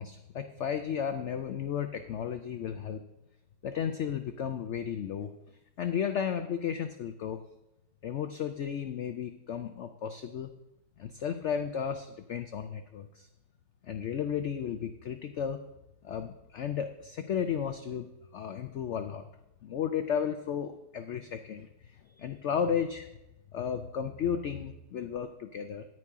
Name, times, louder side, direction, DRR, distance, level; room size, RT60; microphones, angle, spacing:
voice 1, 0.0-3.0 3.6-5.3 5.8-7.4 8.0-10.5 11.0-13.3 13.8-15.6 16.0-19.3 19.6-23.1 23.5-25.9, left 8 dB, 80° left, 9 dB, 0.6 m, -34 dB
9.9 x 9.4 x 3.6 m, 0.92 s
omnidirectional pair, 1.8 m